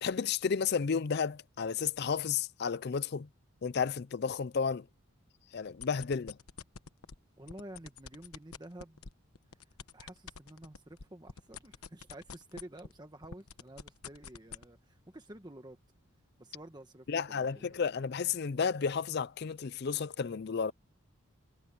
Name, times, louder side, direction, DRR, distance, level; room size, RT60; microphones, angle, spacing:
voice 1, 0.0-3.3 3.6-4.8 5.5-6.4 17.1-20.7, left 6 dB, 50° left, 0.4 m, -32 dB
sound 1, 5.7-7.2 7.5-13.0 13.2-14.7, left 6 dB, 90° left, 1.1 m, -46 dB
voice 2, 7.4-9.0 9.9-15.8 16.4-17.7, right 1 dB, 20° right, 1.2 m, -50 dB
head